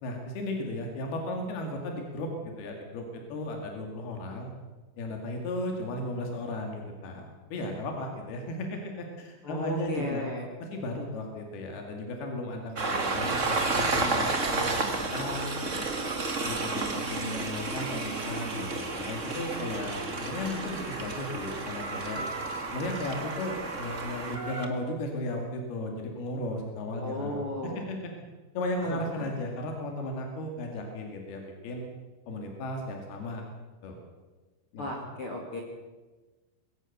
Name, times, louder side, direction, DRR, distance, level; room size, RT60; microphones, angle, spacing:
voice 1, 0.0-4.5 5.0-10.3 10.6-15.9 16.4-22.2 22.7-28.1 28.6-31.9 32.3-33.4 33.8-34.0 34.7-34.9, left 1 dB, 85° left, 2 dB, 4.3 m, -35 dB
voice 2, 9.4-10.5 22.1-22.3 27.0-27.8 28.9-29.3 34.8-35.6, left 1 dB, 40° left, 0 dB, 2.9 m, -35 dB
Train, 12.8-24.7, right 3 dB, 35° right, 1.3 m, -31 dB
21.5 x 18.0 x 6.7 m, 1.3 s
omnidirectional pair, 4.4 m